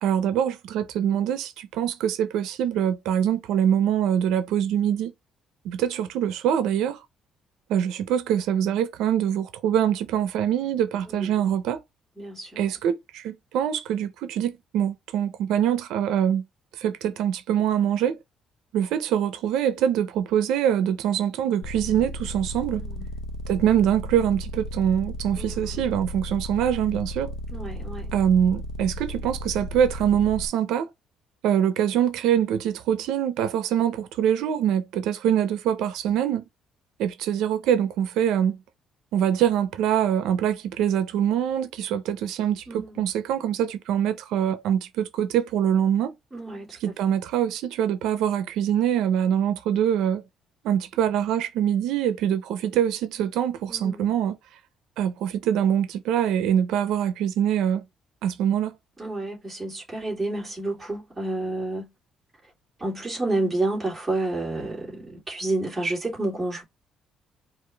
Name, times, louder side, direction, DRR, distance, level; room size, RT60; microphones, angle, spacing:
voice 1, 0.0-5.1 5.6-7.0 7.7-11.8 12.6-16.4 16.8-18.2 18.7-22.8 23.5-27.3 28.1-30.9 31.4-36.4 37.0-38.6 39.1-46.1 46.8-50.2 50.6-54.4 55.0-57.8 58.2-58.7, right 9 dB, 90° right, 0.6 m, -24 dB
voice 2, 11.1-11.5 12.2-12.7 22.7-23.1 25.4-25.9 27.5-28.1 42.7-43.0 46.3-46.9 53.7-54.1 59.0-61.9 62.8-66.6, right 2 dB, 10° right, 2.8 m, -30 dB
sound 1, 21.6-30.5, equal, 80° left, 0.7 m, -34 dB
4.9 x 2.6 x 3.4 m
cardioid pair, 165°, 0 cm